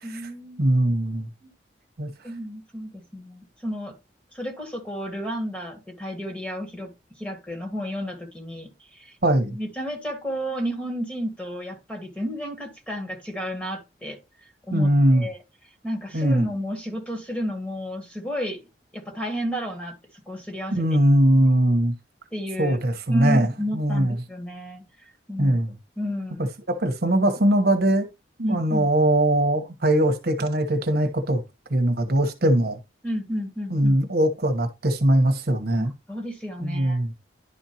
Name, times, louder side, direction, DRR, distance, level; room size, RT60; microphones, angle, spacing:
voice 1, 0.0-0.8 1.4-1.5 2.2-4.0 4.3-9.2 9.5-14.2 14.7-15.4 15.8-18.6 18.9-20.8 22.3-22.8 23.1-24.9 25.3-25.6 26.0-26.5 28.4-28.9 33.0-34.0 35.8-37.0, equal, 10° left, 1.9 m, -32 dB
voice 2, 0.6-1.3 2.0-2.1 9.2-9.6 14.7-15.3 16.1-16.4 20.8-21.9 22.6-24.1 25.4-25.7 26.7-28.1 28.4-31.4 31.7-32.8 33.7-35.9 36.6-37.1, right 1 dB, 60° right, 1.2 m, -21 dB
11.0 x 4.4 x 2.9 m
head